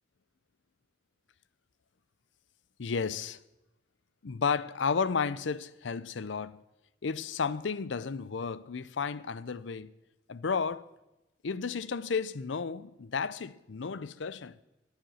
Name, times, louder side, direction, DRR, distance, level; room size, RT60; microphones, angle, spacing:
voice 1, 2.8-3.4 4.2-6.6 7.0-9.9 10.3-10.9 11.4-14.6, left 5 dB, 75° left, 0.6 m, -33 dB
14.0 x 9.6 x 6.3 m
head